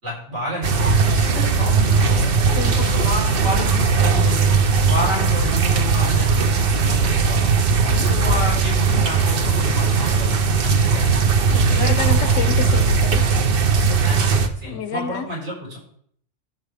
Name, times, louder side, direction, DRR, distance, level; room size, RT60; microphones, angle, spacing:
voice 1, 0.0-2.3 2.6-4.5 4.9-7.5 7.9-11.2 11.7-12.6 14.0-15.8, equal, 70° right, -5 dB, 4.3 m, -30 dB
sound 1, 0.6-14.5, right 5 dB, 55° right, 0.9 m, -18 dB
voice 2, 2.5-2.9 7.9-8.1 11.5-13.2 14.7-15.3, left 6 dB, 80° left, 12 dB, 1.1 m, -29 dB
14.5 x 6.4 x 3.4 m, 0.64 s
omnidirectional pair, 1.3 m